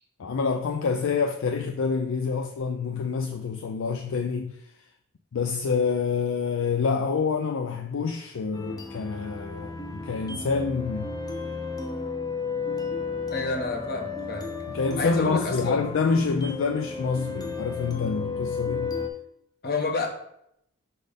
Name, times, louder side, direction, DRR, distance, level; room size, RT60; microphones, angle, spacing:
voice 1, 0.2-4.5 5.3-11.1 14.7-18.9, left 5 dB, 65° left, 0.4 m, -27 dB
sound 1, 8.5-19.1, left 4 dB, 20° left, 0.6 m, -33 dB
voice 2, 13.3-14.6 15.0-15.8 19.6-20.1, left 3 dB, 50° left, 1.1 m, -28 dB
5.3 x 4.2 x 5.0 m
head